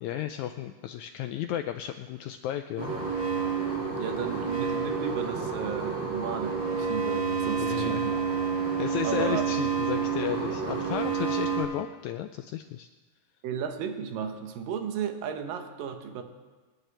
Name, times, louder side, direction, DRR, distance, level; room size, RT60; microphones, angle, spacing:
voice 1, 0.0-2.9 7.6-8.1 8.8-12.9, left 11 dB, 90° left, 8 dB, 1.6 m, -34 dB
sound 1, 2.8-11.6, right 6 dB, 50° right, 6.2 m, -29 dB
voice 2, 4.0-8.2 9.0-9.4 13.4-16.2, right 7 dB, 85° right, 6 dB, 2.8 m, -34 dB
27.0 x 10.5 x 3.4 m, 1.3 s
omnidirectional pair, 3.9 m